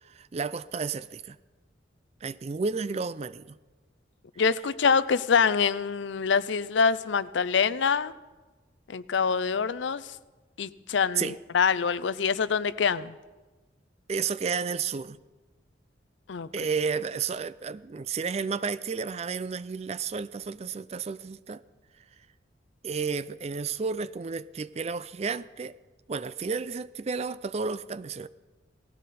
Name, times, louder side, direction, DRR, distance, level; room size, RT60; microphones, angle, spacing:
voice 1, 0.0-1.4 2.2-3.6 11.2-11.4 14.1-15.2 16.5-21.6 22.8-25.8 26.1-28.3, right 5 dB, 35° right, 17 dB, 0.4 m, -32 dB
voice 2, 4.4-8.1 8.9-10.1 10.6-13.1 16.3-16.5, left 6 dB, 80° left, 16 dB, 0.5 m, -25 dB
18.0 x 15.5 x 4.2 m, 1.2 s
head